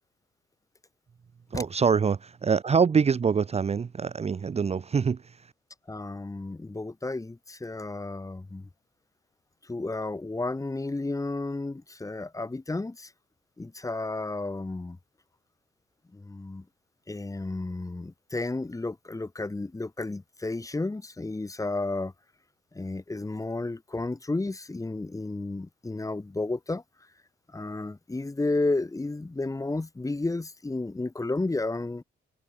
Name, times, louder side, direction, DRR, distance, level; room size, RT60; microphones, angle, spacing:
voice 1, 1.5-5.4, right 6 dB, 30° right, 0.8 m, -25 dB
voice 2, 5.9-8.7 9.6-13.1 13.6-15.0 16.1-16.6 17.1-22.1 22.7-26.8 27.5-32.0, left 2 dB, 15° left, 2.5 m, -32 dB
cardioid pair, 90°, 20 cm